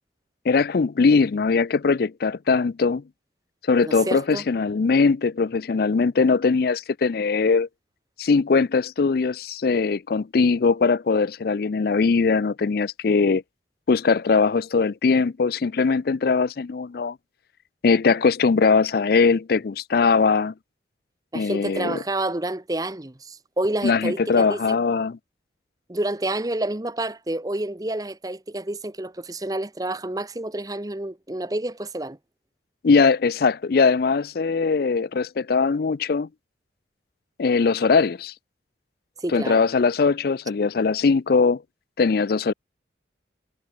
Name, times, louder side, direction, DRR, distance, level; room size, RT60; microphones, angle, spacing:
voice 1, 0.5-3.0 3.7-7.7 8.2-13.4 13.9-17.2 17.8-20.5 21.3-22.0 23.8-25.2 32.8-36.3 37.4-38.3 39.3-41.6 42.0-42.5, left 4 dB, 55° left, 0.4 m, -21 dB
voice 2, 3.8-4.4 21.3-24.8 25.9-32.2 39.2-39.6, right 1 dB, 20° right, 0.9 m, -29 dB
head